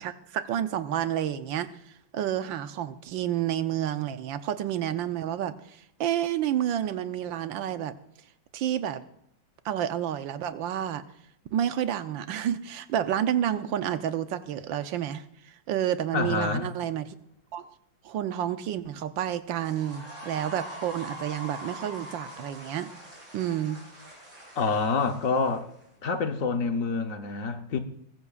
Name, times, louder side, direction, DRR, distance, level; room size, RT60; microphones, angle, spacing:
voice 1, 0.0-1.7 2.1-5.6 6.0-7.9 8.5-9.0 9.6-11.0 11.5-17.2 17.5-17.7 18.0-22.9 23.3-23.8, right 10 dB, 75° right, 11 dB, 1.4 m, -30 dB
voice 2, 16.1-16.7 24.6-25.7 26.0-27.8, left 4 dB, 55° left, 6 dB, 1.1 m, -27 dB
sound 1, 19.5-25.8, right 1 dB, 55° right, 7.5 m, -43 dB
21.5 x 15.0 x 2.4 m, 0.74 s
omnidirectional pair, 2.2 m